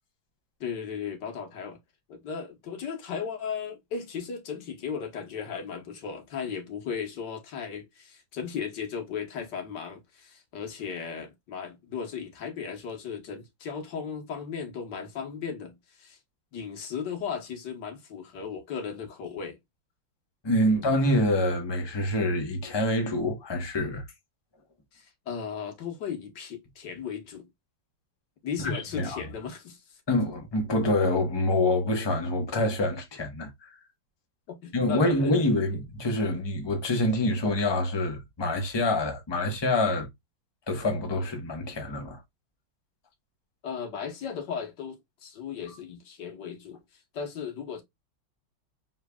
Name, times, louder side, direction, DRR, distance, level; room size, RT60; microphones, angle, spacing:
voice 1, 0.6-1.8 2.1-16.2 16.5-19.6 20.7-20.9 24.9-27.5 28.4-29.8 30.1-30.2 34.5-35.5 43.6-46.8 47.1-47.8, left 7 dB, 70° left, 1.7 m, -36 dB
voice 2, 20.4-24.0 28.6-29.2 30.1-33.7 34.7-40.1 40.7-42.2 45.7-45.8, left 1 dB, 20° left, 0.9 m, -26 dB
5.1 x 3.8 x 2.3 m
omnidirectional pair, 2.0 m